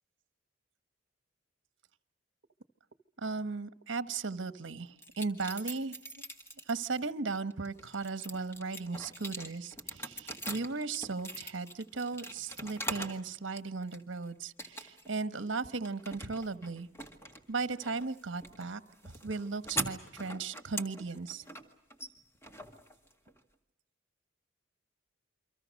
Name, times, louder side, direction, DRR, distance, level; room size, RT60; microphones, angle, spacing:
voice 1, 3.2-6.0 6.7-16.9 17.5-21.4, right 4 dB, 70° right, 12 dB, 1.1 m, -36 dB
sound 1, 5.0-7.0 7.5-13.2 13.6-14.2 14.6-15.2 15.5-23.4, right 1 dB, 15° left, 1.8 m, -42 dB
29.0 x 24.5 x 6.3 m, 0.77 s
head